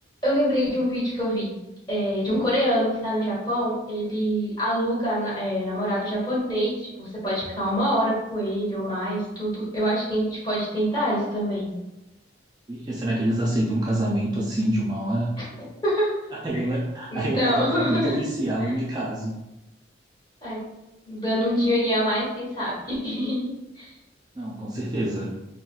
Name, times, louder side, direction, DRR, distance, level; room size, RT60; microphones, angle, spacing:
voice 1, 0.2-1.5 1.9-11.7 15.4-15.5 15.8-16.1 17.1-18.2 20.4-20.6 21.1-23.5 23.8-23.9, equal, 25° left, -7 dB, 1.2 m, -25 dB
voice 2, 12.7-15.3 16.3-19.3 24.3-25.3, right 1 dB, 20° right, -5 dB, 0.3 m, -26 dB
3.8 x 2.1 x 2.4 m, 0.97 s
head